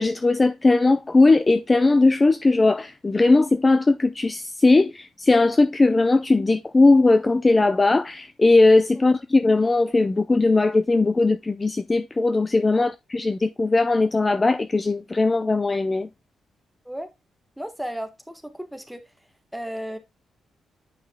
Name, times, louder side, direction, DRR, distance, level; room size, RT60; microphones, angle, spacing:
voice 1, 0.0-16.1, left 3 dB, 25° left, 0.4 m, -19 dB
voice 2, 17.6-19.0 19.5-20.0, equal, ahead, 1.3 m, -34 dB
9.0 x 5.4 x 2.2 m
cardioid pair, 105°, 0 cm